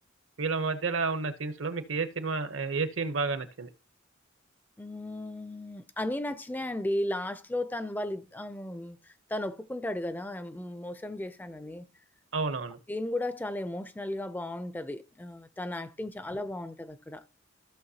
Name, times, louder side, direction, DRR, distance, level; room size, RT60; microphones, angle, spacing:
voice 1, 0.4-3.7 12.3-12.8, right 4 dB, 70° right, 0.8 m, -31 dB
voice 2, 4.8-11.9 12.9-17.2, left 1 dB, 10° left, 0.4 m, -35 dB
15.0 x 6.1 x 2.8 m
head